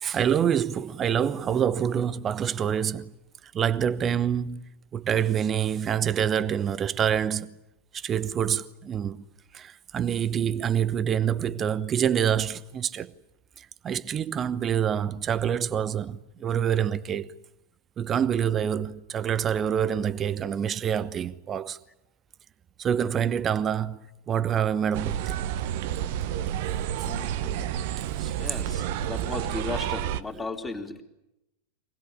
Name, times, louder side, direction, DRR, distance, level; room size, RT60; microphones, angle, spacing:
voice 1, 0.0-3.1 3.5-7.6 7.9-9.2 9.5-13.1 13.6-17.3 18.0-21.8 22.8-25.4 28.2-28.4, right 8 dB, 25° right, 1.0 m, -26 dB
sound 1, 24.9-30.2, right 11 dB, 50° right, 0.9 m, -30 dB
voice 2, 27.0-27.8 28.4-31.0, left 3 dB, 10° left, 3.0 m, -36 dB
25.0 x 19.0 x 10.0 m
figure-of-eight pair, 90°, 0 cm